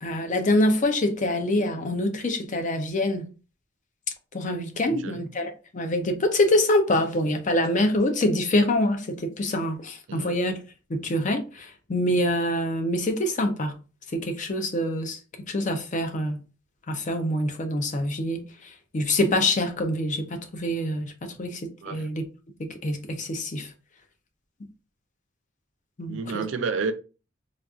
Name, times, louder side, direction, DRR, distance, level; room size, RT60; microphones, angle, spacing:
voice 1, 0.0-3.3 4.3-10.5 10.9-13.8 14.1-15.2 15.5-16.4 16.9-22.3 22.6-23.7 26.0-26.4, left 1 dB, 40° left, 0.5 m, -25 dB
voice 2, 4.9-5.2 10.1-10.4 21.8-22.1 26.1-26.9, right 4 dB, 80° right, 0.4 m, -30 dB
4.0 x 2.3 x 2.3 m
head